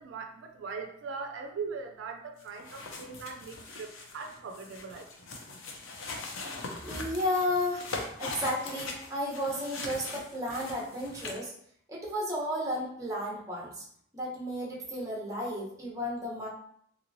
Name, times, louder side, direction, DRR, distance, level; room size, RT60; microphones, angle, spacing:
voice 1, 0.0-3.9 4.1-5.1, right 5 dB, 75° right, 4 dB, 0.3 m, -40 dB
sound 1, 2.4-11.5, left 3 dB, 90° left, 0.6 m, -41 dB
voice 2, 6.8-7.9 8.2-11.5 11.9-13.8 14.1-16.5, left 1 dB, 15° right, -4 dB, 0.8 m, -33 dB
3.0 x 3.0 x 2.6 m, 0.67 s
head